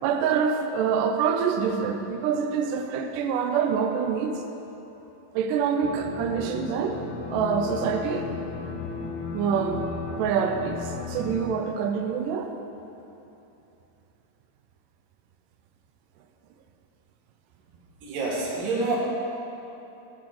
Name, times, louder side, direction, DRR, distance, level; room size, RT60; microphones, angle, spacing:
voice 1, 0.0-4.4 5.3-7.0 7.3-8.3 9.3-9.8 10.2-12.5, right 6 dB, 85° right, 5 dB, 1.9 m, -26 dB
sound 1, 5.8-11.4, left 4 dB, 85° left, 2.6 m, -35 dB
voice 2, 18.0-19.0, right 3 dB, 65° right, -4 dB, 3.1 m, -27 dB
11.0 x 4.6 x 7.7 m, 3.0 s
omnidirectional pair, 4.4 m